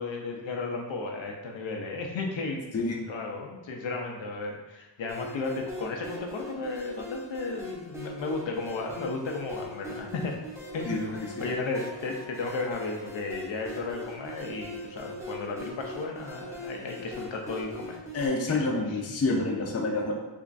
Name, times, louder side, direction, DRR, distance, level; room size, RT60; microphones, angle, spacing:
voice 1, 0.0-2.6 3.0-10.3 10.7-11.1 11.4-18.0 18.5-19.0, left 3 dB, 80° left, 1 dB, 0.6 m, -34 dB
sound 1, 5.0-18.3, left 1 dB, 5° right, 0.7 m, -40 dB
voice 2, 10.9-11.2 18.1-20.1, left 2 dB, 35° left, 0 dB, 0.5 m, -28 dB
3.5 x 3.0 x 2.5 m, 1.1 s
wide cardioid pair, 120°, 44 cm